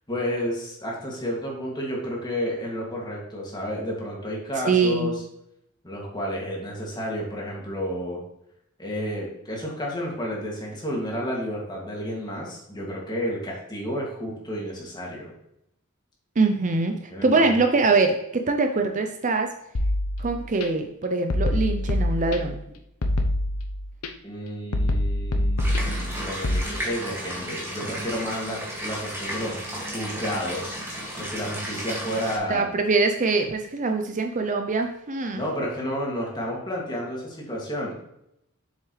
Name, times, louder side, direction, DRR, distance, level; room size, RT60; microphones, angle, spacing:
voice 1, 0.1-5.2 5.8-8.2 8.8-15.3 17.1-17.5 24.2-30.7 31.2-32.7 35.3-37.9, equal, 20° left, -3 dB, 2.3 m, -31 dB
voice 2, 4.6-5.1 16.4-19.5 20.2-22.6 32.5-35.4, right 3 dB, 35° right, 5 dB, 0.6 m, -23 dB
sound 1, 19.7-20.7 21.3-22.6 23.0-24.1 24.7-26.6, left 1 dB, 90° left, 0.8 m, -25 dB
sound 2, 25.6-32.4, equal, 10° right, 2.0 m, -33 dB
7.3 x 7.3 x 3.2 m, 0.80 s
head